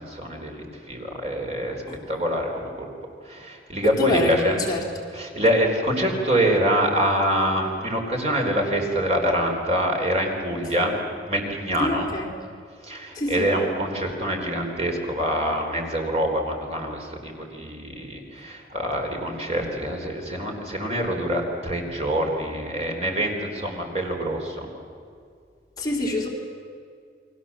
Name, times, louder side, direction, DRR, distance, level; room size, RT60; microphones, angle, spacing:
voice 1, 0.0-1.8 2.1-2.9 3.2-4.6 5.1-10.9 11.3-12.1 12.8-24.7, equal, 35° right, 1 dB, 4.1 m, -25 dB
voice 2, 3.8-4.9 11.8-12.3 13.1-13.5 25.8-26.3, left 1 dB, 20° left, -2 dB, 3.6 m, -26 dB
30.0 x 23.0 x 7.5 m, 2.2 s
head